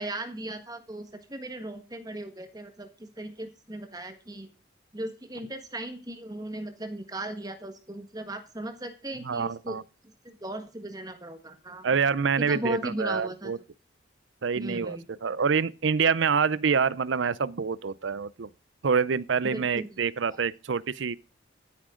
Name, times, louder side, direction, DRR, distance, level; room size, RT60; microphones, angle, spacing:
voice 1, 0.0-4.5 4.9-9.8 10.4-11.8 12.4-13.5 14.5-15.0 19.4-19.9 20.2-20.4, right 1 dB, 20° right, 1.5 m, -37 dB
voice 2, 9.2-9.8 11.8-13.6 14.4-18.5 18.8-21.2, right 6 dB, 70° right, 0.5 m, -26 dB
14.0 x 8.9 x 3.8 m
head